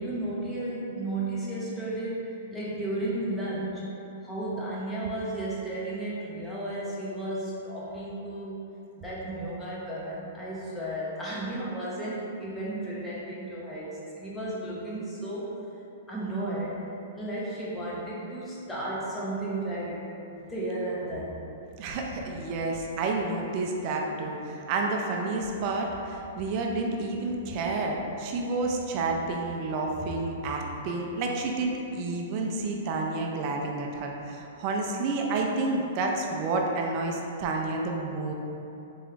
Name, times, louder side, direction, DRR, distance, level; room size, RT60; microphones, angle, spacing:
voice 1, 0.0-3.9 4.2-8.7 9.0-15.6 16.1-16.9 17.1-20.1 20.3-21.4, right 1 dB, 10° left, -7 dB, 0.8 m, -33 dB
voice 2, 21.8-38.3, right 3 dB, 40° right, 1 dB, 0.5 m, -30 dB
3.5 x 3.0 x 3.3 m, 2.9 s
hypercardioid pair, 150°, 0 cm